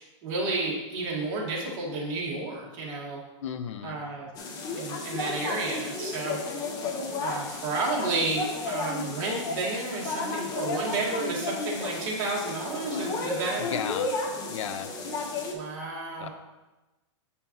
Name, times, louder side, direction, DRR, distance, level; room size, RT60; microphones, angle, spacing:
voice 1, 0.0-3.2 3.8-4.3 4.8-6.4 7.2-13.6 15.5-16.3, right 3 dB, 35° right, -3 dB, 1.8 m, -31 dB
voice 2, 3.4-4.0 13.6-14.1 14.5-14.9 16.2-16.3, left 8 dB, 70° left, 9 dB, 0.6 m, -34 dB
sound 1, 4.3-15.5, left 3 dB, 25° left, 0.8 m, -33 dB
8.4 x 5.5 x 3.0 m, 1.1 s
supercardioid pair, 160°, 16 cm